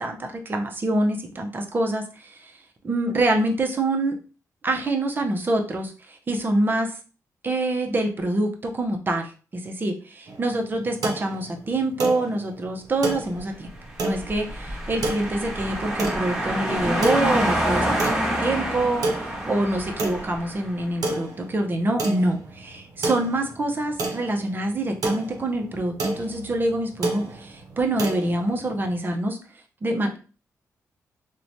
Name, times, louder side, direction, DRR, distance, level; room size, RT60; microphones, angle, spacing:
voice 1, 0.0-2.5 2.8-4.2 4.6-7.0 7.4-13.7 14.0-29.4 29.8-30.2, right 2 dB, 35° right, 3 dB, 0.5 m, -26 dB
sound 1, 10.3-29.0, right 2 dB, 80° right, 0.6 m, -32 dB
sound 2, 14.0-20.7, equal, 15° right, 1.1 m, -27 dB
2.9 x 2.1 x 2.6 m, 0.36 s
cardioid pair, 95°, 6 cm